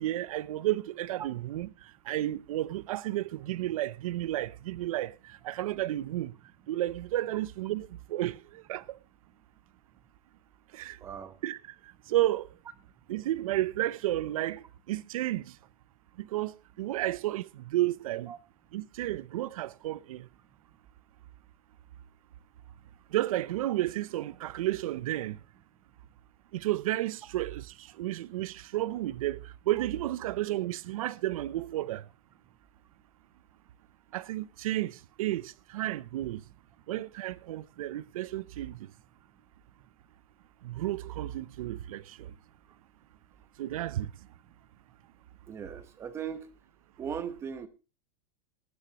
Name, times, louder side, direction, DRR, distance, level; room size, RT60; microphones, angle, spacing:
voice 1, 0.0-1.7 2.1-6.3 6.7-9.0 10.7-11.0 11.4-11.6 12.1-12.5 13.1-15.5 16.2-18.3 18.7-20.3 23.1-25.4 26.5-32.0 34.1-36.4 36.9-38.8 40.6-42.3 43.6-44.1, right 15 dB, 60° right, 0.6 m, -32 dB
voice 2, 11.0-11.4 18.3-18.4 45.5-46.6 47.0-47.7, right 7 dB, 15° right, 0.9 m, -38 dB
20.0 x 9.3 x 2.9 m
supercardioid pair, 175°, 20 cm